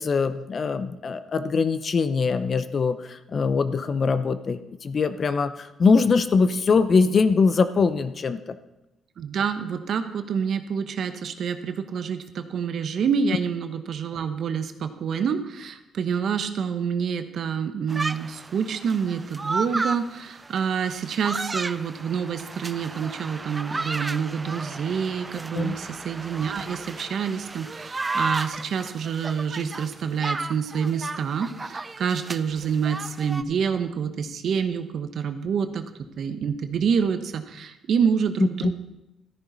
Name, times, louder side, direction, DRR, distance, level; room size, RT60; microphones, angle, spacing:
voice 1, 0.0-8.6 25.5-25.7 38.4-38.7, left 4 dB, 45° left, 12 dB, 0.7 m, -22 dB
voice 2, 9.2-35.8 36.2-38.8, right 6 dB, 65° right, 8 dB, 1.0 m, -27 dB
sound 1, 17.9-33.4, right 3 dB, 25° right, 0.4 m, -33 dB
13.5 x 10.0 x 4.0 m, 0.96 s
cardioid pair, 90°, 0 cm